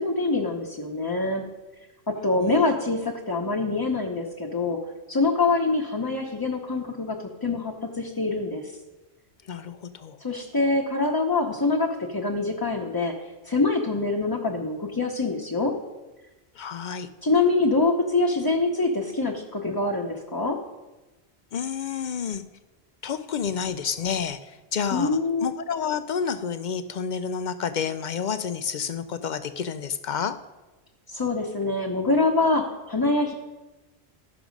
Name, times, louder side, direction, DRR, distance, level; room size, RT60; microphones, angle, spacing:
voice 1, 0.0-1.4 2.1-4.8 5.1-8.6 10.2-13.1 13.4-15.7 17.2-20.6 24.9-25.5 31.1-33.3, left 3 dB, 20° left, -1 dB, 0.8 m, -25 dB
voice 2, 9.5-10.2 16.6-17.1 21.5-22.4 23.0-30.4, left 7 dB, 55° left, 11 dB, 0.5 m, -30 dB
14.0 x 6.0 x 5.2 m, 1.1 s
omnidirectional pair, 1.1 m